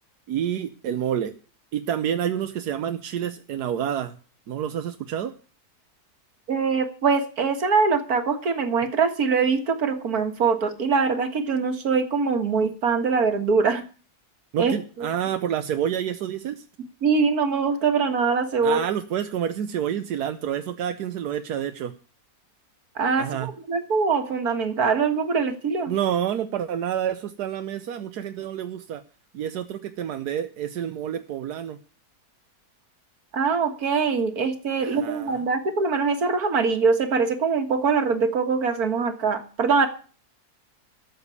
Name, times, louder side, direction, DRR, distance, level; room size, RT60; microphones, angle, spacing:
voice 1, 0.3-1.4 1.7-4.2 4.5-5.3 14.5-16.6 18.6-21.9 23.2-23.5 25.9-29.0 29.3-31.8 34.8-35.4, right 9 dB, 85° right, 8 dB, 1.4 m, -28 dB
voice 2, 6.5-13.8 14.6-14.7 15.0-15.1 17.0-18.8 23.0-25.9 33.3-39.9, right 5 dB, 70° right, 7 dB, 2.1 m, -23 dB
13.5 x 7.0 x 8.3 m, 0.38 s
omnidirectional pair, 1.7 m